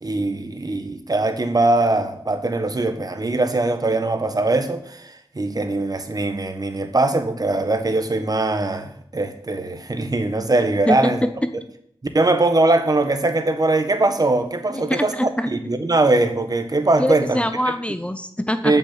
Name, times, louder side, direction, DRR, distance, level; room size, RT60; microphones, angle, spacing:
voice 1, 0.0-11.3 12.1-15.1 15.5-17.4 18.6-18.8, right 2 dB, 40° right, 1.3 m, -21 dB
voice 2, 14.7-15.5 17.0-18.8, left 1 dB, 10° left, 0.7 m, -24 dB
8.3 x 7.3 x 8.4 m
wide cardioid pair, 75°, 10 cm